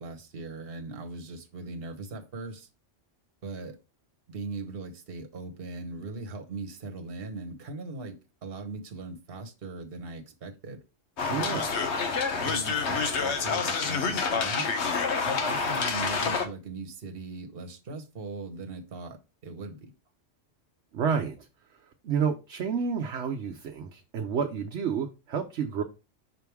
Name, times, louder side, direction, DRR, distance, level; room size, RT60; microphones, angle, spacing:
voice 1, 0.0-2.7 3.4-3.8 4.3-10.8 11.2-11.6 12.4-14.7 15.2-19.9, right 3 dB, 55° right, 1.3 m, -39 dB
sound 1, 11.2-16.5, left 5 dB, 70° left, 1.2 m, -28 dB
voice 2, 11.3-11.7 20.9-21.5 22.0-25.8, right 6 dB, 70° right, 1.0 m, -30 dB
5.9 x 3.5 x 4.6 m
omnidirectional pair, 1.2 m